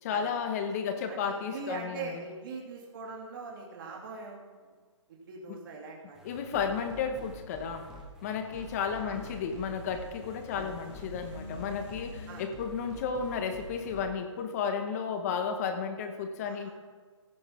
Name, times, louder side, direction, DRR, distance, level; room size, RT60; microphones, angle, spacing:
voice 1, 0.0-2.2 5.5-5.6 6.2-7.9 8.2-16.7, left 6 dB, 30° left, 7 dB, 1.1 m, -33 dB
voice 2, 1.1-4.7 5.2-6.2 8.5-9.2 10.6-10.7 12.3-12.4 16.4-16.7, right 4 dB, 40° right, -2 dB, 2.7 m, -42 dB
sound 1, 6.1-14.0, equal, 5° right, 1.5 m, -48 dB
sound 2, 6.9-12.5, left 3 dB, 50° left, 3.2 m, -48 dB
16.5 x 5.7 x 4.4 m, 1.4 s
hypercardioid pair, 155°, 16 cm